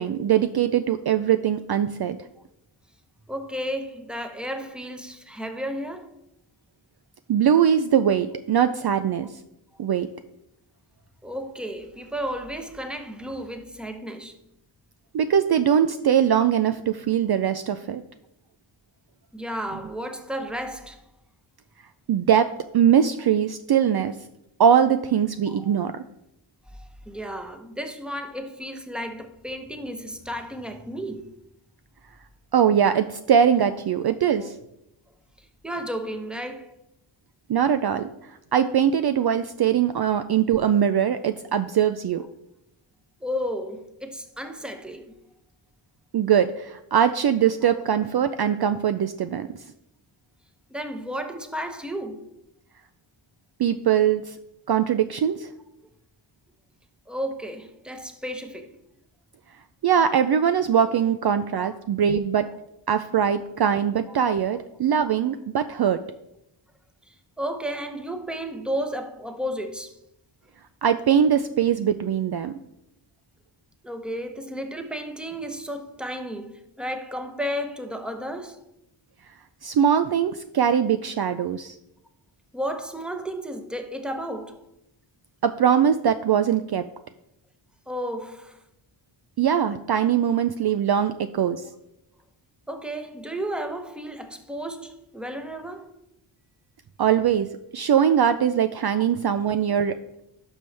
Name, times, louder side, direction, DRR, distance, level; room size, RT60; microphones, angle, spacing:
voice 1, 0.0-2.2 7.3-9.3 9.8-10.1 15.1-18.0 22.1-22.5 22.7-24.1 24.6-25.9 32.5-34.5 37.5-42.2 46.1-49.5 53.6-54.4 54.7-55.5 59.8-62.5 62.9-66.0 70.8-72.6 79.6-81.8 85.4-86.9 89.4-91.6 97.0-97.5 97.7-100.0, right 8 dB, 50° right, 0.5 m, -21 dB
voice 2, 3.3-6.2 11.2-14.4 19.3-21.0 25.5-25.7 26.7-31.3 35.6-36.7 43.2-45.1 50.7-52.2 57.1-58.8 61.6-61.8 62.1-62.2 64.5-64.6 67.1-70.0 73.8-78.6 82.5-84.6 87.9-88.6 92.7-95.9, equal, ahead, 1.0 m, -33 dB
11.5 x 5.4 x 3.3 m
cardioid pair, 50°, 50 cm